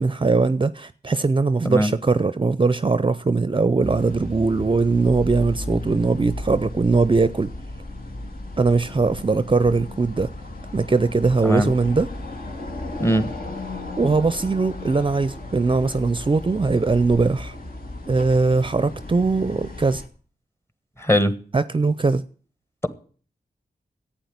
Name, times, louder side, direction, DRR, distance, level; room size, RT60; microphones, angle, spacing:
voice 1, 0.0-7.5 8.6-10.3 10.7-12.1 14.0-17.5 18.1-20.0 21.5-22.2, right 3 dB, 30° right, 0.5 m, -20 dB
sound 1, 3.8-20.1, left 2 dB, 60° left, 2.1 m, -35 dB
voice 2, 21.0-21.3, equal, 15° left, 1.4 m, -20 dB
11.5 x 8.9 x 9.5 m
wide cardioid pair, 85°, 17 cm